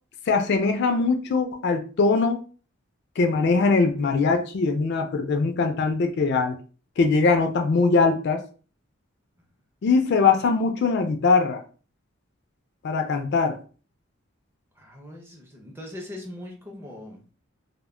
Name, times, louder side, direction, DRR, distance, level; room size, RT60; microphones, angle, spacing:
voice 1, 0.3-2.4 3.2-6.6 7.0-8.4 9.8-11.6 12.8-13.6, left 4 dB, 55° left, 6 dB, 0.3 m, -21 dB
voice 2, 14.8-17.2, left 1 dB, 10° right, 1 dB, 0.5 m, -40 dB
2.1 x 2.1 x 3.5 m, 0.38 s
head